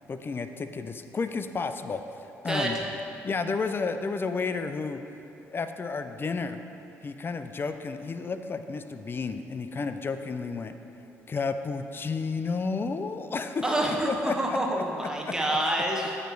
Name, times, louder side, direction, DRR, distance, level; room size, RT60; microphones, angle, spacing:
voice 1, 0.1-2.8 3.2-5.0 5.5-6.6 7.0-10.7 11.3-13.8 14.1-15.3, left 4 dB, 35° left, 9 dB, 0.4 m, -32 dB
voice 2, 2.5-2.8 13.6-16.2, right 1 dB, 10° right, -1 dB, 1.0 m, -27 dB
8.9 x 3.1 x 4.5 m, 2.9 s
supercardioid pair, 55°, 6 cm